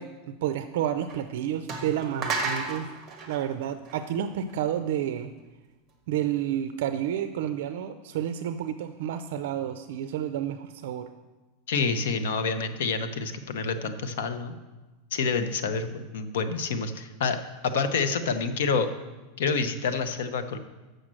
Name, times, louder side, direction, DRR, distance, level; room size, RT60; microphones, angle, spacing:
voice 1, 0.0-2.9 3.3-5.3 6.1-11.1, right 10 dB, 65° right, 10 dB, 0.4 m, -30 dB
sound 1, 1.1-1.2 1.7-4.5, right 3 dB, 20° right, 1.3 m, -33 dB
voice 2, 11.7-14.5 15.1-18.9 19.4-20.6, left 4 dB, 80° left, 9 dB, 0.8 m, -28 dB
6.5 x 6.3 x 7.5 m, 1.2 s
supercardioid pair, 170°, 0 cm